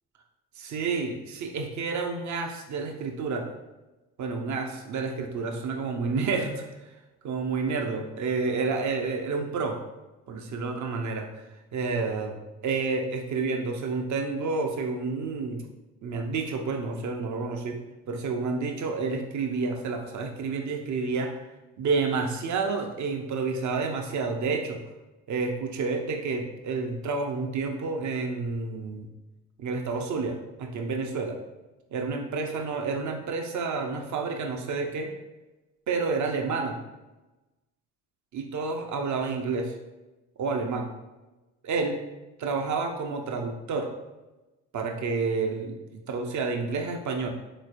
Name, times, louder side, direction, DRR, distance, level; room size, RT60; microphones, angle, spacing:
voice 1, 0.6-3.5 4.2-6.6 7.2-9.8 10.3-11.3 11.7-12.4 12.6-15.6 16.0-17.8 18.1-21.4 21.8-24.8 25.3-29.1 29.6-31.4 31.9-35.1 35.9-36.8 38.3-39.7 40.4-40.9 41.6-42.0 42.4-43.9 44.7-47.3, right 4 dB, 45° right, 4 dB, 0.7 m, -29 dB
4.0 x 3.1 x 2.5 m, 1.1 s
hypercardioid pair, 50°, 41 cm